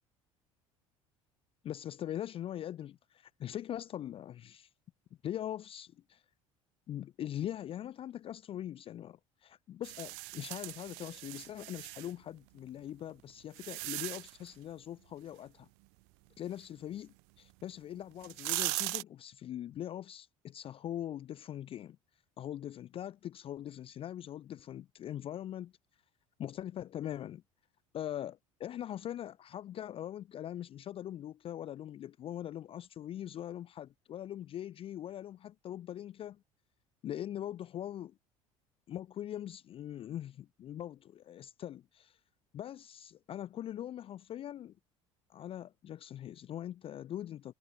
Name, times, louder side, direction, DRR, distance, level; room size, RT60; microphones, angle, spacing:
voice 1, 1.6-4.7 5.2-6.2 6.9-15.7 16.4-17.1 17.4-22.0 22.4-25.7 26.4-27.4 27.9-36.4 37.0-38.1 38.9-42.2 42.5-44.7 45.3-47.5, left 11 dB, 35° left, 0.5 m, -42 dB
sound 1, 9.8-12.1 12.9-14.5 17.5-17.6 18.1-19.0, right 40 dB or more, 55° right, 0.4 m, -38 dB
figure-of-eight pair, 60°, 17 cm